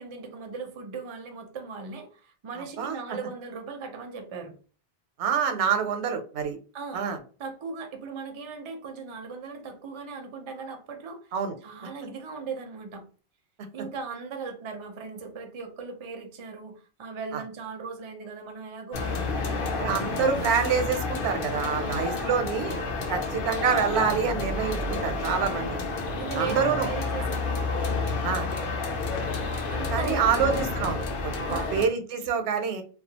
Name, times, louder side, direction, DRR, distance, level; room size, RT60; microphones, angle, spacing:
voice 1, 0.0-4.6 6.7-7.1 7.4-11.3 11.6-13.0 13.7-20.3 21.7-22.4 25.5-25.7 26.0-27.7 29.7-30.5 31.4-31.9, right 5 dB, 40° right, 0.4 m, -38 dB
voice 2, 5.2-6.6 6.9-7.2 11.3-11.5 19.8-22.8 23.1-25.7 26.4-26.9 28.2-28.5 29.9-32.8, right 6 dB, 85° right, 0.9 m, -26 dB
sound 1, 18.9-31.9, left 3 dB, 60° left, 0.7 m, -30 dB
2.3 x 2.2 x 2.7 m
omnidirectional pair, 1.1 m